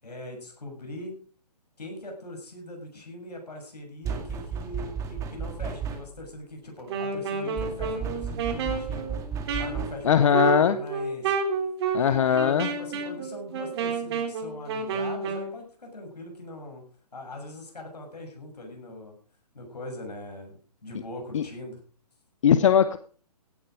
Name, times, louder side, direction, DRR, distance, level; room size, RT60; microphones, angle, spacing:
voice 1, 0.0-1.1 1.8-9.2 9.6-11.4 11.9-16.8 17.1-19.1 19.5-21.8, left 1 dB, 80° left, 2 dB, 7.1 m, -41 dB
sound 1, 4.0-6.3 7.6-10.2, right 6 dB, 15° right, 2.1 m, -34 dB
Wind instrument woodwind instrument, 6.8-15.5, right 5 dB, 40° right, 3.4 m, -30 dB
voice 2, 10.0-10.8 11.9-12.7 21.3-21.4 22.4-23.0, left 8 dB, 50° left, 12 dB, 0.9 m, -20 dB
16.0 x 10.5 x 5.1 m, 0.43 s
figure-of-eight pair, 135°, 20 cm